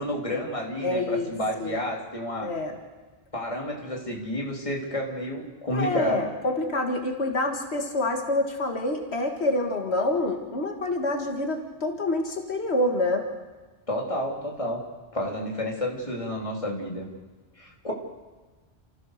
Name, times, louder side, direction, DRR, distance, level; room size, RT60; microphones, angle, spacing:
voice 1, 0.0-2.5 3.3-6.3 13.9-14.8 15.1-17.1 17.6-17.9, left 1 dB, 30° left, -1 dB, 3.7 m, -30 dB
voice 2, 0.8-1.3 1.6-1.8 2.4-2.8 5.7-13.3, left 2 dB, 85° left, 3 dB, 2.3 m, -27 dB
29.0 x 15.5 x 6.7 m, 1.3 s
omnidirectional pair, 1.1 m